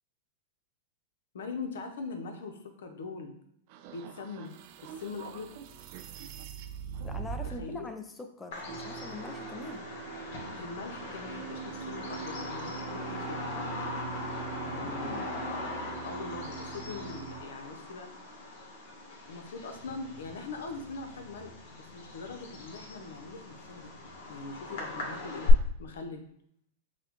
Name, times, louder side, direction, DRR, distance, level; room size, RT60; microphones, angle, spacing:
voice 1, 1.3-3.4 3.9-5.5 7.4-7.9 10.6-13.6 14.6-21.5 21.8-23.9 24.3-26.3, left 4 dB, 85° left, 5 dB, 0.7 m, -42 dB
sound 1, 3.7-7.7, right 7 dB, 50° right, 0.4 m, -42 dB
voice 2, 7.0-9.9 14.8-15.3, left 3 dB, 15° left, 6 dB, 0.4 m, -43 dB
Bird vocalization bird call bird song, 8.5-25.5, left 5 dB, 60° left, 1.2 m, -39 dB
sound 2, 8.7-17.4, right 6 dB, 85° right, 1.0 m, -42 dB
5.8 x 2.2 x 3.0 m, 0.71 s
hypercardioid pair, 135°, 0 cm